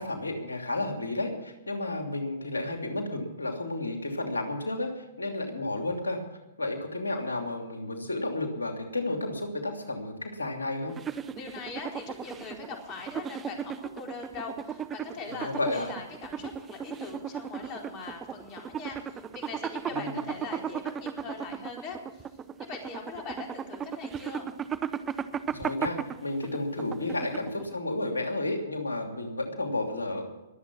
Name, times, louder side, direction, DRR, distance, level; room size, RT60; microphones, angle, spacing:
voice 1, 0.0-6.2 6.6-10.9 15.3-15.9 19.9-20.2 25.5-30.2, left 2 dB, 90° left, 4 dB, 2.9 m, -32 dB
sound 1, 10.9-27.7, right 8 dB, 20° right, 0.8 m, -36 dB
voice 2, 11.3-22.2 22.6-24.5, left 4 dB, 35° left, 1 dB, 4.2 m, -41 dB
22.0 x 8.2 x 6.1 m, 1.1 s
hypercardioid pair, 120°, 0 cm